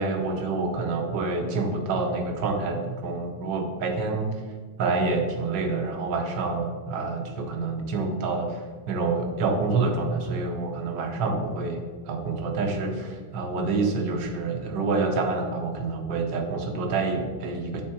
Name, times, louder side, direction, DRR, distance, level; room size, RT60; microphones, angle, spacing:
voice 1, 0.0-4.4 4.8-11.8 12.1-17.8, right 3 dB, 85° right, 3 dB, 1.5 m, -27 dB
8.2 x 3.6 x 4.4 m, 1.5 s
omnidirectional pair, 1.9 m